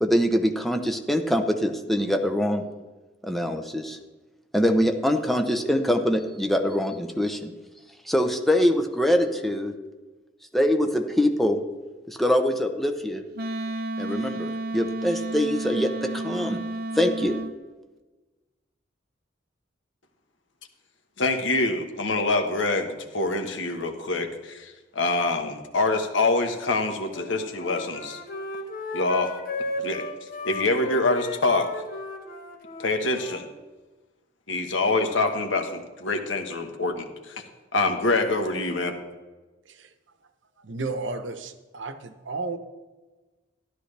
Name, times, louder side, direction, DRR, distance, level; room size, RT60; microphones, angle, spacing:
voice 1, 0.0-2.7 3.2-4.0 4.5-7.5 8.1-9.7 10.5-11.6 12.1-13.2 14.0-16.6 17.0-17.4, equal, ahead, 4 dB, 0.7 m, -24 dB
Wind instrument woodwind instrument, 13.3-17.5, right 2 dB, 55° right, 0.6 m, -31 dB
voice 2, 21.2-28.2 28.9-29.3 29.8-30.0 30.4-31.7 32.8-33.5 34.5-37.4 37.7-39.0, left 3 dB, 85° left, 5 dB, 1.3 m, -25 dB
Wind instrument woodwind instrument 2, 27.1-33.5, left 2 dB, 50° left, 1.2 m, -35 dB
voice 3, 40.6-42.6, right 3 dB, 80° right, 9 dB, 0.9 m, -33 dB
13.0 x 11.5 x 3.3 m, 1.2 s
head